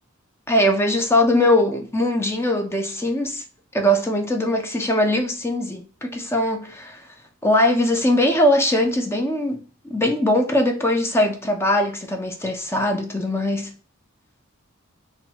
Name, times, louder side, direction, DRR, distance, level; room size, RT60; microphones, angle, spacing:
voice 1, 0.5-3.4 3.7-7.0 7.4-9.6 9.9-13.7, left 1 dB, 10° left, 0.5 m, -21 dB
5.7 x 2.3 x 2.9 m
head